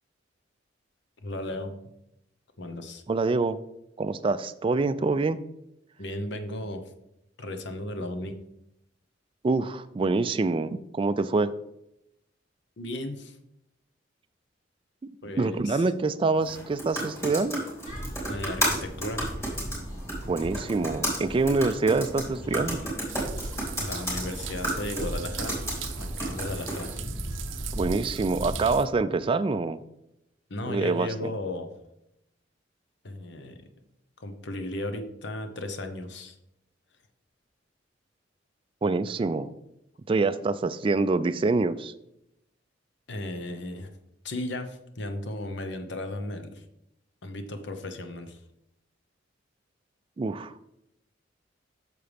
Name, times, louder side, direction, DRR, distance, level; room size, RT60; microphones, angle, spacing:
voice 1, 1.2-1.8 2.6-3.0 6.0-6.9 7.4-8.4 12.8-13.4 15.2-15.8 18.3-19.3 23.8-25.6 26.0-27.0 30.5-31.7 33.0-33.6 34.2-36.3 43.1-43.9 44.2-46.6 47.2-48.4, left 1 dB, 65° left, 7 dB, 0.9 m, -35 dB
voice 2, 3.1-3.6 4.0-5.4 9.4-11.5 15.4-17.6 20.3-22.8 27.7-29.8 30.7-31.3 38.8-39.5 40.1-41.9 50.2-50.5, right 3 dB, 25° right, 11 dB, 0.3 m, -26 dB
sound 1, 16.4-26.9, right 1 dB, 15° left, 3.3 m, -33 dB
sound 2, 17.8-28.7, equal, 40° left, 2.6 m, -37 dB
sound 3, 23.1-28.9, right 11 dB, 85° right, 0.6 m, -41 dB
8.7 x 6.7 x 3.4 m, 0.84 s
head